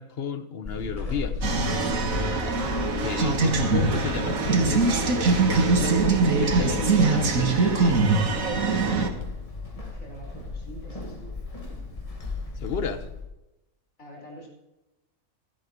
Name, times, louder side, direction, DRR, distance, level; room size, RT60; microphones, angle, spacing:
voice 1, 0.0-1.4 3.0-8.0 12.6-13.1, left 6 dB, 50° left, 11 dB, 1.1 m, -33 dB
Walk footsteps / Squeak, 0.6-13.3, left 3 dB, 25° left, 1.7 m, -35 dB
sound 1, 1.4-9.1, right 4 dB, 75° right, 1.8 m, -22 dB
voice 2, 9.9-11.3 14.0-14.5, right 1 dB, 70° left, -1 dB, 4.9 m, -45 dB
16.0 x 12.0 x 3.0 m, 0.98 s
omnidirectional pair, 1.4 m